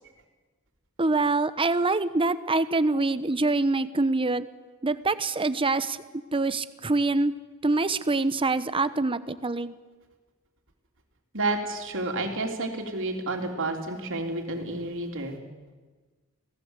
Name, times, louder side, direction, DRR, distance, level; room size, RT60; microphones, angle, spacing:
voice 1, 1.0-4.5 4.8-6.0 6.3-7.3 7.6-9.7, right 3 dB, 25° right, 14 dB, 0.9 m, -25 dB
voice 2, 11.3-15.4, right 2 dB, 60° right, 3 dB, 3.5 m, -30 dB
27.0 x 18.0 x 8.3 m, 1.3 s
head